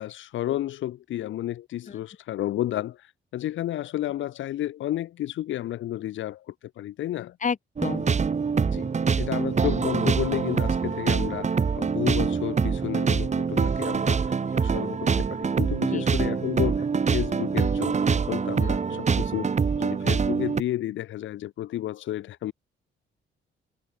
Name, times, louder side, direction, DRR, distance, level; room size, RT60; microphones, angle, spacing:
voice 1, 0.0-7.4 8.6-8.9 9.2-19.5 19.8-22.5, left 13 dB, 75° left, 1.4 m, -32 dB
voice 2, 7.4-8.1 15.9-16.0 18.6-19.0, left 6 dB, 40° left, 2.8 m, -31 dB
sound 1, 7.8-20.6, right 5 dB, 35° right, 2.2 m, -25 dB
cardioid pair, 90°, 20 cm